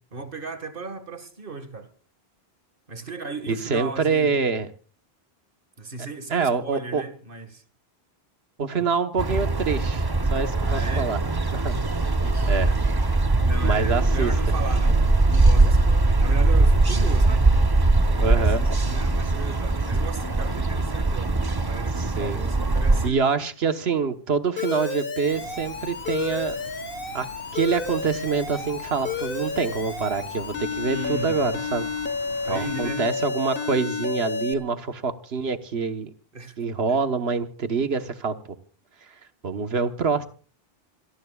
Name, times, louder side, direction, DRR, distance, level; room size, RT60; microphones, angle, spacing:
voice 1, 0.1-1.9 2.9-4.3 5.8-7.6 8.8-8.9 10.6-11.1 12.2-12.7 13.4-17.5 18.1-23.2 30.9-31.6 32.5-33.1 36.3-36.6 36.9-37.0, right 3 dB, 60° right, 2.0 m, -36 dB
voice 2, 3.5-4.7 6.3-7.0 8.6-10.0 10.3-11.2 11.5-11.8 12.5-12.7 13.6-14.3 18.2-18.6 22.0-22.4 23.0-26.6 27.1-31.9 32.4-36.1 36.6-38.3 39.1-39.2 39.4-40.3, right 5 dB, 80° right, 1.5 m, -26 dB
sound 1, 9.2-23.1, right 2 dB, 25° right, 0.8 m, -21 dB
Alarm, 24.6-34.5, left 4 dB, 60° left, 1.6 m, -31 dB
sound 2, 25.3-33.0, left 1 dB, 90° left, 3.2 m, -45 dB
27.5 x 18.0 x 2.4 m
omnidirectional pair, 1.0 m